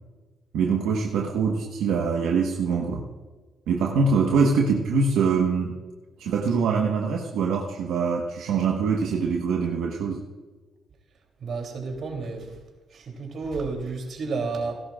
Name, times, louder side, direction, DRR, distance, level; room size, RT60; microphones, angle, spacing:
voice 1, 0.5-3.1 3.7-5.8 6.2-10.2, right 5 dB, 85° right, 0 dB, 1.3 m, -24 dB
voice 2, 11.4-12.6 12.9-14.7, right 4 dB, 60° right, 2 dB, 3.2 m, -31 dB
18.5 x 11.5 x 2.5 m, 1.3 s
cardioid pair, 90°, 0 cm